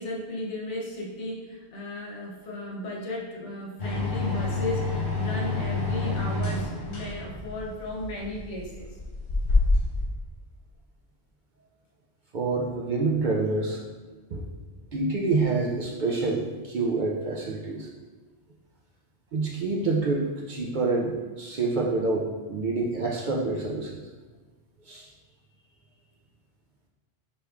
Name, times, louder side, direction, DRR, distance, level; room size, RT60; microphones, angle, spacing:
voice 1, 0.0-9.0, left 1 dB, 85° left, -2 dB, 1.2 m, -35 dB
sound 1, 3.8-10.1, left 3 dB, 70° left, 1.6 m, -27 dB
voice 2, 12.3-13.8 14.3-14.4 14.9-17.9 19.3-24.0 24.9-25.1, right 3 dB, 60° right, -1 dB, 0.5 m, -27 dB
6.3 x 3.0 x 2.4 m, 1.3 s
omnidirectional pair, 1.2 m